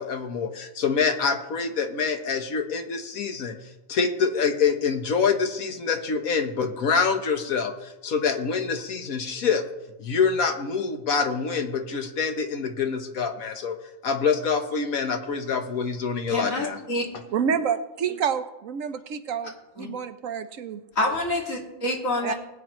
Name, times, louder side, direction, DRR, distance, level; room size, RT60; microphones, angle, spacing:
voice 1, 0.0-9.6 10.0-13.8 14.0-16.8, left 5 dB, 85° left, 6 dB, 1.6 m, -26 dB
voice 2, 16.3-17.0 19.8-19.9 21.0-22.3, left 1 dB, 70° left, 0 dB, 2.6 m, -27 dB
voice 3, 17.3-20.8 22.2-22.3, right 7 dB, 70° right, 10 dB, 1.1 m, -28 dB
20.5 x 9.2 x 3.1 m, 0.96 s
omnidirectional pair, 1.4 m